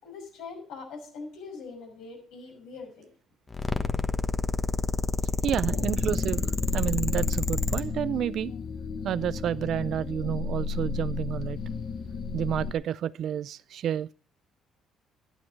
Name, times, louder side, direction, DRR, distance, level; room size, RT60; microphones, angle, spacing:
voice 1, 0.0-3.1, left 4 dB, 85° left, 6.0 m, -42 dB
sound 1, 3.5-7.8, left 3 dB, 25° left, 1.2 m, -28 dB
voice 2, 5.4-8.5 9.0-11.6 12.3-14.1, right 10 dB, 65° right, 0.4 m, -30 dB
sound 2, 5.6-12.7, left 5 dB, 55° left, 1.4 m, -33 dB
12.0 x 11.0 x 4.6 m
cardioid pair, 95°, 0 cm